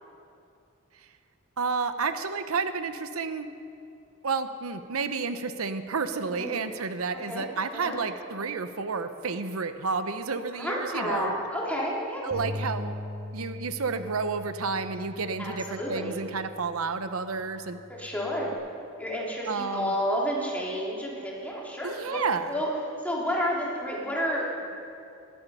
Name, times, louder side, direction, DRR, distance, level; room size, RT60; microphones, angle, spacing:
voice 1, 1.6-3.5 4.2-11.3 12.2-13.0 13.3-17.8 19.5-19.9 21.8-22.6, right 4 dB, 90° right, 10 dB, 0.8 m, -31 dB
voice 2, 6.3-6.6 7.3-7.5 7.7-8.0 10.5-12.4 15.4-16.2 17.9-18.5 19.0-22.7 23.0-24.7, equal, 5° left, -4 dB, 3.1 m, -30 dB
Bass guitar, 12.3-18.6, left 1 dB, 20° right, 4.2 m, -41 dB
19.5 x 12.5 x 5.5 m, 2.6 s
head